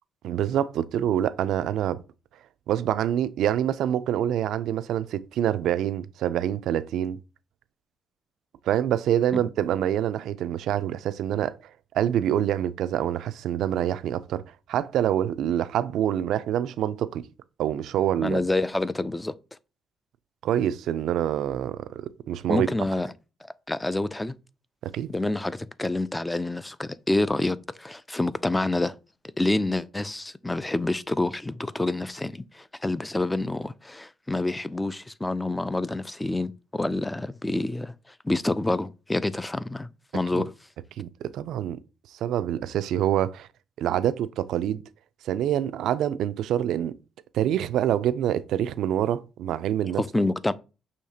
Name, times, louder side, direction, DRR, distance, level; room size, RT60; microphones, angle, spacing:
voice 1, 0.2-2.0 2.7-7.2 8.7-11.6 11.9-14.4 14.7-17.2 17.6-18.4 20.4-22.7 24.9-25.1 40.3-40.4 41.0-41.8 42.2-43.5 43.8-44.8 45.2-46.9 47.3-50.0, right 11 dB, 80° right, 0.3 m, -26 dB
voice 2, 18.2-19.3 22.5-23.1 23.7-24.3 25.1-28.9 29.4-37.9 38.2-39.9 40.1-40.5 49.9-50.5, left 2 dB, 10° left, 0.3 m, -27 dB
6.4 x 2.8 x 2.7 m
cardioid pair, 90°, 0 cm